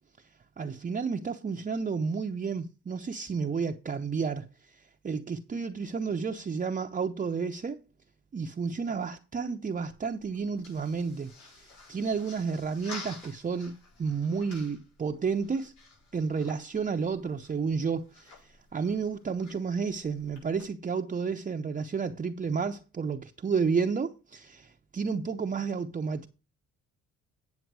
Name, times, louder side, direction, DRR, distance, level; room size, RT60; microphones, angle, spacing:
voice 1, 0.6-4.5 5.0-7.8 8.3-15.7 16.1-18.4 18.7-26.3, right 5 dB, 25° right, 0.7 m, -31 dB
sound 1, 9.7-20.6, left 3 dB, 85° left, 6.7 m, -51 dB
9.4 x 7.2 x 4.7 m
cardioid pair, 90°, 30 cm